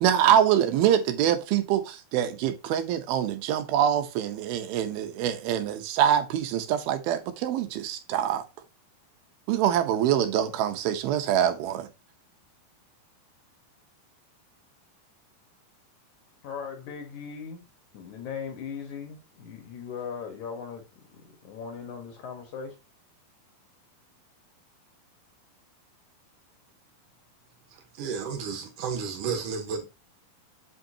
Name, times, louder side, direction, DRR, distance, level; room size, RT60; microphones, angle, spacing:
voice 1, 0.0-8.4 9.5-11.9, right 10 dB, 85° right, 2.6 m, -24 dB
voice 2, 16.4-17.6 17.9-20.8 21.1-22.8, left 6 dB, 65° left, 2.3 m, -38 dB
voice 3, 28.0-29.9, right 6 dB, 65° right, 2.5 m, -32 dB
8.0 x 5.3 x 2.7 m
omnidirectional pair, 4.3 m